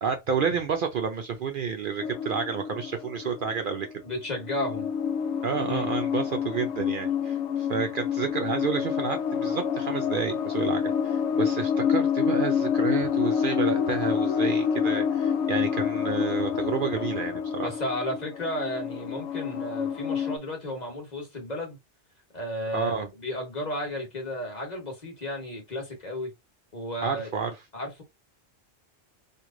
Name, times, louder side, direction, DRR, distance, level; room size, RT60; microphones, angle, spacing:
voice 1, 0.0-3.9 5.4-17.7 22.7-23.1 27.0-27.6, right 6 dB, 60° right, 0.6 m, -30 dB
sound 1, 2.0-3.9 4.3-20.4, left 7 dB, 80° left, 0.9 m, -28 dB
voice 2, 4.0-4.9 5.5-5.9 17.6-21.8 22.3-22.9 23.2-26.3 26.7-27.3 27.7-28.0, left 1 dB, 40° left, 1.3 m, -33 dB
3.1 x 2.5 x 3.6 m
omnidirectional pair, 1.2 m